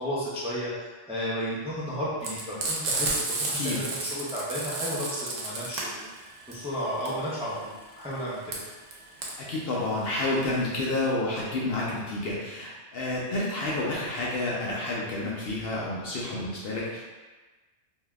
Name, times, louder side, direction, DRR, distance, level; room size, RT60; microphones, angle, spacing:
voice 1, 0.0-6.1 6.5-8.6, equal, 10° right, -8 dB, 0.4 m, -33 dB
Frying (food), 2.2-11.0, right 2 dB, 90° right, 1.0 m, -32 dB
voice 2, 9.2-17.0, left 2 dB, 60° left, -5 dB, 0.7 m, -30 dB
3.6 x 2.7 x 2.3 m, 1.3 s
omnidirectional pair, 1.3 m